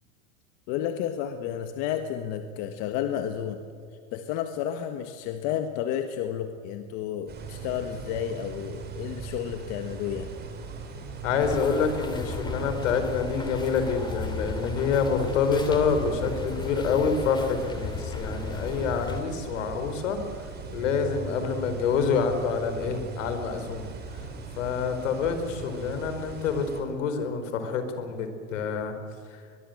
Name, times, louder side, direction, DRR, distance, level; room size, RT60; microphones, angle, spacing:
voice 1, 0.7-3.6 4.1-10.3, left 10 dB, 50° left, 7 dB, 1.7 m, -31 dB
sound 1, 7.3-26.8, right 5 dB, 25° right, 4.2 m, -39 dB
voice 2, 11.2-20.2 20.7-23.9 24.6-29.0 29.3-29.4, left 5 dB, 75° left, 8 dB, 4.5 m, -27 dB
sound 2, 11.4-19.2, left 3 dB, 10° left, 2.5 m, -35 dB
22.5 x 22.0 x 7.9 m, 2.2 s
supercardioid pair, 140°, 38 cm